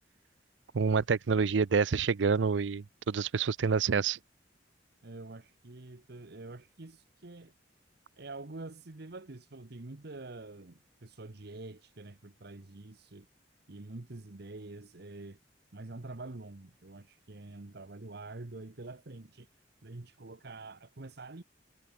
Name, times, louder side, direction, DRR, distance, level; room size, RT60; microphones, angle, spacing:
voice 1, 0.7-4.2, right 5 dB, 85° right, 0.5 m, -27 dB
voice 2, 5.0-7.5 8.2-13.3 13.7-15.4 15.7-19.5 19.8-21.4, right 2 dB, 60° right, 1.2 m, -46 dB
head